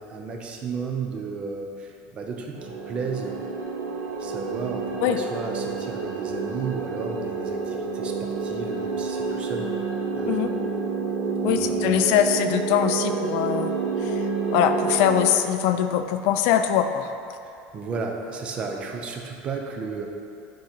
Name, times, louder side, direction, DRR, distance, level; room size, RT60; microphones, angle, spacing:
voice 1, 0.0-3.4 4.2-9.7 10.1-10.6 11.4-12.1 17.4-20.1, right 4 dB, 25° right, 2 dB, 0.5 m, -33 dB
sound 1, 2.5-15.3, right 4 dB, 55° right, 0.9 m, -29 dB
voice 2, 11.4-13.7 14.0-14.1 14.5-17.1, left 10 dB, 55° left, 8 dB, 0.4 m, -22 dB
7.4 x 3.8 x 4.3 m, 2.6 s
cardioid pair, 175°, 5 cm